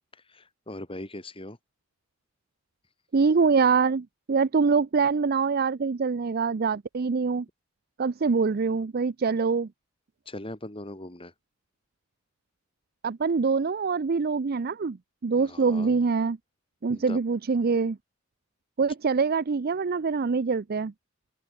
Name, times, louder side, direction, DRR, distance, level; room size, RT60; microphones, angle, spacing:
voice 1, 0.1-1.6 10.3-11.3 15.4-16.0 16.9-17.2, left 1 dB, 25° left, 6.0 m, -40 dB
voice 2, 3.1-7.5 8.0-9.7 13.0-15.0 15.2-16.4 16.8-18.0 18.8-20.9, right 5 dB, 50° right, 0.5 m, -24 dB
head